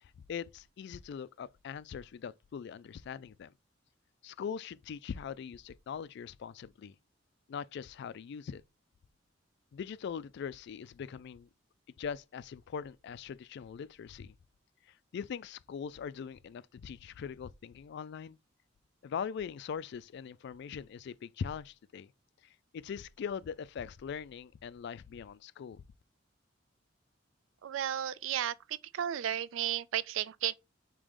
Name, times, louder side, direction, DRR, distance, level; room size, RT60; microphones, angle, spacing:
voice 1, 0.0-3.5 4.2-6.9 7.5-8.6 9.7-11.5 12.0-14.3 15.1-18.4 19.0-22.1 22.7-25.8, left 7 dB, 60° left, 0.3 m, -41 dB
voice 2, 27.6-30.5, right 10 dB, 85° right, 0.4 m, -34 dB
5.0 x 2.9 x 3.6 m
head